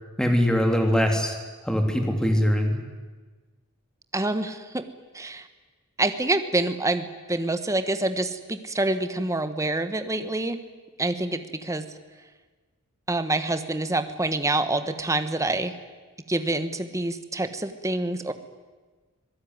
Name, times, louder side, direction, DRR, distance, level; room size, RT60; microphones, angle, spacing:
voice 1, 0.2-1.4 1.6-2.8, equal, 5° left, 3 dB, 3.0 m, -22 dB
voice 2, 4.1-4.8 5.1-5.5 6.0-10.6 11.0-11.8 13.1-15.7 16.3-18.3, right 2 dB, 15° right, 10 dB, 1.3 m, -26 dB
26.0 x 18.0 x 9.6 m, 1.3 s
head